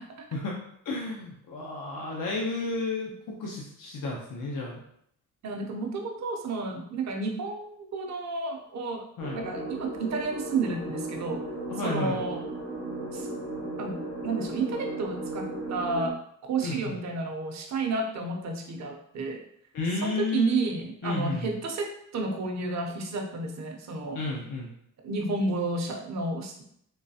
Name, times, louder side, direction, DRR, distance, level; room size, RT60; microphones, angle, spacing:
voice 1, 0.8-4.8 9.2-9.4 11.7-12.2 16.6-17.0 19.7-20.6 21.0-21.5 24.1-24.7, left 3 dB, 80° left, -2 dB, 0.7 m, -32 dB
voice 2, 5.4-9.0 9.3-11.4 11.8-12.4 13.1-13.3 13.8-16.1 16.4-19.4 20.0-24.2 25.0-26.6, right 3 dB, 60° right, 3 dB, 0.6 m, -31 dB
sound 1, 9.2-16.1, right 2 dB, 60° left, 1.0 m, -36 dB
3.8 x 3.1 x 2.7 m, 0.70 s
wide cardioid pair, 175°, 32 cm